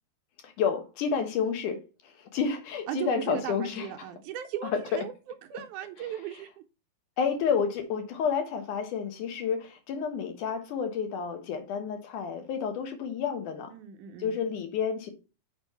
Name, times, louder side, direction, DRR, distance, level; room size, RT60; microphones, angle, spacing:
voice 1, 0.4-3.9 4.6-5.0 7.2-13.7 14.2-15.1, left 6 dB, 65° left, 2.7 m, -30 dB
voice 2, 2.9-5.1 5.5-6.5 13.7-14.4, right 11 dB, 75° right, 1.9 m, -37 dB
6.4 x 5.2 x 5.7 m
omnidirectional pair, 4.1 m